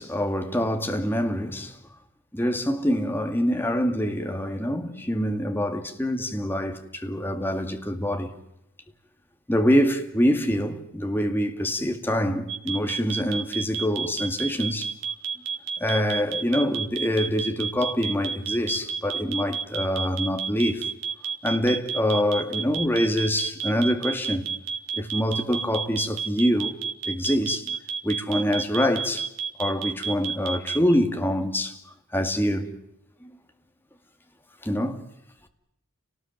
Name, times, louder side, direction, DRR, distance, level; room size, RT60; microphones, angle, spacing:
voice 1, 0.0-1.8 2.3-8.3 9.5-14.9 15.8-20.9 21.4-24.5 24.9-26.8 27.1-27.8 28.0-29.3 29.6-31.8 32.1-32.7 33.2-33.3 34.6-35.0, equal, 10° left, 2.1 m, -25 dB
sound 1, 12.5-30.8, right 7 dB, 60° right, 2.7 m, -29 dB
30.0 x 19.5 x 9.2 m
head